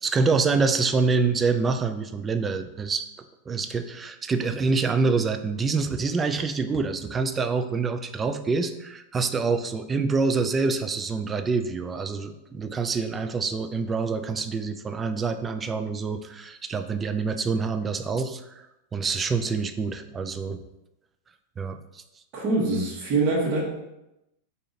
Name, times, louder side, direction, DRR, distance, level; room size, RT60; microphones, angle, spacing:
voice 1, 0.0-3.0 3.5-18.6 18.9-20.6 21.6-22.0, right 4 dB, 20° right, 9 dB, 0.4 m, -26 dB
voice 2, 22.3-23.6, right 3 dB, 40° right, -5 dB, 1.4 m, -24 dB
4.9 x 2.7 x 3.8 m, 0.91 s
figure-of-eight pair, 90°, 0 cm